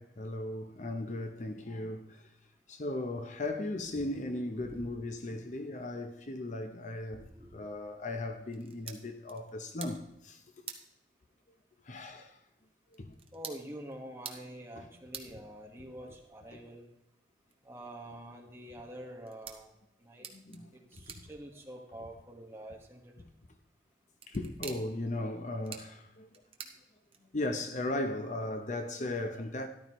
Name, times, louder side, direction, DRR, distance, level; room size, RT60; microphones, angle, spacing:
voice 1, 0.0-2.3 2.7-10.4 11.8-12.4 12.9-13.1 14.8-14.9 16.5-16.6 20.3-20.7 21.1-21.2 24.3-26.3 27.3-29.7, left 2 dB, 45° left, 0.7 m, -37 dB
voice 2, 4.0-4.3 4.6-4.9 5.3-5.4 7.1-7.5 13.3-16.8 17.6-19.7 20.0-20.2 20.9-23.0, right 1 dB, 15° right, 1.5 m, -46 dB
sound 1, 8.5-27.5, right 7 dB, 30° right, 0.9 m, -52 dB
13.0 x 11.5 x 3.1 m
head